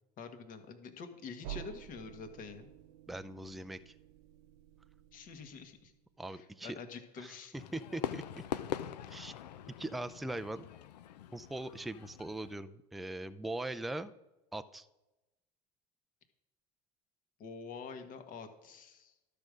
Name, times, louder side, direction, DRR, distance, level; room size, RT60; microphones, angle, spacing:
voice 1, 0.2-2.7 5.1-5.9 6.3-7.5 17.4-19.1, left 5 dB, 40° left, 7 dB, 1.5 m, -47 dB
sound 1, 1.4-6.1, right 12 dB, 60° right, 0.5 m, -50 dB
voice 2, 3.1-3.9 6.2-6.8 7.2-8.4 9.1-9.3 9.8-10.7 11.3-14.1 14.5-14.9, right 1 dB, ahead, 10 dB, 0.4 m, -41 dB
Fireworks, 7.6-12.6, left 10 dB, 85° left, 0.6 m, -43 dB
12.0 x 5.3 x 6.2 m, 0.99 s
hypercardioid pair, 105°, 21 cm